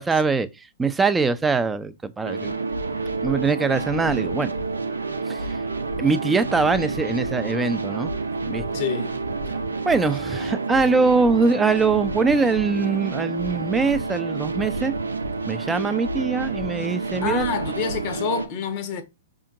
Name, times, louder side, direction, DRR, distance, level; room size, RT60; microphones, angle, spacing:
voice 1, 0.0-2.5 3.2-4.5 5.3-5.6 6.0-8.1 8.4-8.6 9.8-14.9 15.5-17.5, right 4 dB, 10° right, 0.4 m, -22 dB
sound 1, 2.2-18.5, right 3 dB, 90° right, 0.5 m, -29 dB
voice 2, 8.7-9.2 17.2-19.0, left 6 dB, 45° left, 0.8 m, -27 dB
4.9 x 2.8 x 2.4 m
hypercardioid pair, 115°, 0 cm